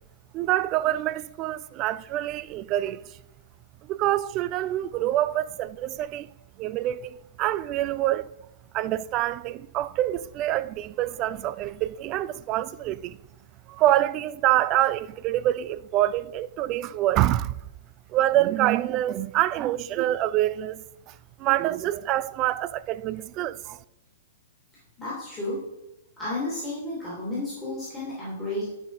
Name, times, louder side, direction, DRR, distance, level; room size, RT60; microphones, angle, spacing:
voice 1, 0.3-3.2 3.9-6.3 6.6-8.3 8.7-13.2 13.7-17.6 18.1-23.8, right 14 dB, 30° right, 0.3 m, -26 dB
voice 2, 25.0-25.6 26.2-28.6, left 2 dB, 10° left, 2.8 m, -32 dB
11.0 x 6.1 x 3.6 m
figure-of-eight pair, 110°, 0 cm